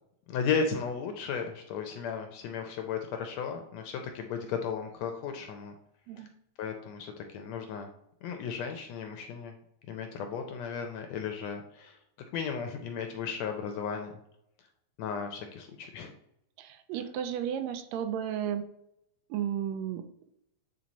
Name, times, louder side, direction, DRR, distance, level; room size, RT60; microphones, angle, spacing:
voice 1, 0.3-5.8 6.2-6.3 6.6-7.9 8.2-9.5 9.9-12.0 12.3-14.1 15.0-16.1, left 6 dB, 75° left, 5 dB, 1.6 m, -35 dB
voice 2, 16.6-18.6 19.3-20.0, right 9 dB, 80° right, 8 dB, 1.7 m, -33 dB
8.9 x 3.1 x 4.0 m, 0.78 s
omnidirectional pair, 3.5 m